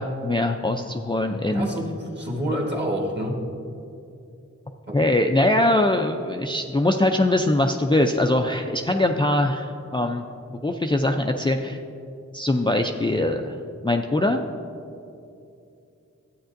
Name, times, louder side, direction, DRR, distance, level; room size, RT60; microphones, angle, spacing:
voice 1, 0.0-1.7 4.9-10.2 10.6-11.8 12.3-13.6 13.8-14.4, left 1 dB, 15° left, 3 dB, 0.4 m, -22 dB
voice 2, 1.5-3.4 4.9-5.0, equal, 35° right, -1 dB, 1.5 m, -27 dB
12.5 x 8.6 x 2.6 m, 2.6 s
wide cardioid pair, 55°, 30 cm